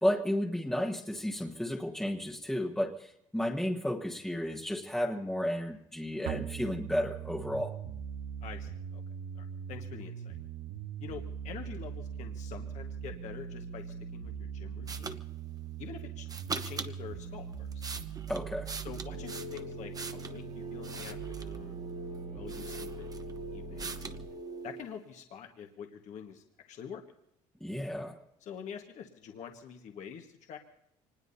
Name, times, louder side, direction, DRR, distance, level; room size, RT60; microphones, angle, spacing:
voice 1, 0.0-7.7 18.3-18.7 27.6-28.2, equal, 5° left, 1 dB, 1.3 m, -32 dB
sound 1, 6.3-24.3, right 7 dB, 85° right, 1.0 m, -41 dB
voice 2, 8.4-9.0 9.3-10.4 11.0-15.2 15.8-16.3 16.6-17.8 18.8-21.8 22.3-24.1 24.6-27.0 28.4-30.6, left 7 dB, 60° left, 3 dB, 1.6 m, -46 dB
sound 2, 14.9-15.2 16.3-16.9 17.5-20.4 20.8-21.6 22.1-22.2 22.5-23.4 23.8-24.2, right 4 dB, 25° right, 1.0 m, -41 dB
sound 3, 19.1-24.8, right 2 dB, 55° right, 2.6 m, -44 dB
25.0 x 20.0 x 2.8 m, 0.76 s
supercardioid pair, 90°, 14 cm